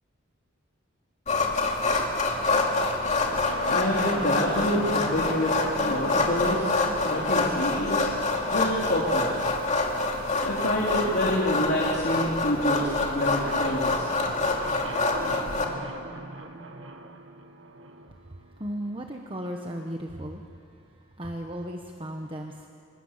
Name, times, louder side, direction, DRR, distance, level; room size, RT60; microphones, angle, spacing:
sound 1, 1.3-15.6, left 3 dB, 35° left, 2.7 m, -26 dB
sound 2, 3.2-19.0, right 2 dB, 70° right, 1.9 m, -40 dB
voice 1, 3.6-6.7 7.0-8.1 8.4-9.4 10.4-14.1, equal, 50° left, -4 dB, 3.4 m, -27 dB
voice 2, 18.6-20.4 21.2-22.7, equal, 25° right, 2 dB, 1.2 m, -35 dB
26.5 x 25.5 x 7.4 m, 2.5 s
head